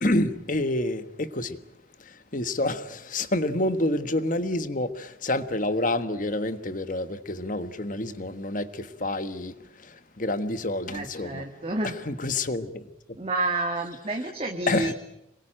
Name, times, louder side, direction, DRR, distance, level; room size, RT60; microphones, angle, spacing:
voice 1, 0.0-1.6 2.0-11.4 11.8-13.2 14.7-14.9, left 1 dB, 45° left, 1.4 m, -28 dB
voice 2, 10.9-12.0 13.2-14.9, right 2 dB, 30° right, 1.9 m, -29 dB
26.5 x 22.0 x 9.0 m
head